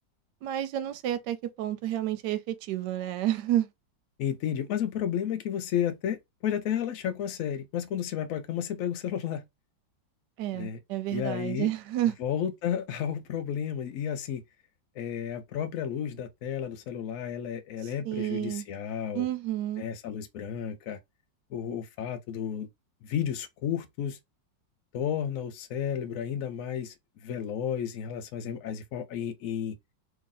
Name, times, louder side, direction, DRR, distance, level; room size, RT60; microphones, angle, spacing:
voice 1, 0.4-3.7 10.4-12.2 17.8-18.6 19.1-19.8, right 13 dB, 75° right, 1.1 m, -30 dB
voice 2, 4.2-9.4 10.5-10.8 11.1-11.7 12.2-14.4 15.0-19.2 19.8-21.0 21.5-22.7 23.0-24.2 24.9-26.9 27.2-29.8, left 9 dB, 70° left, 0.8 m, -32 dB
2.9 x 2.8 x 3.7 m
omnidirectional pair, 2.0 m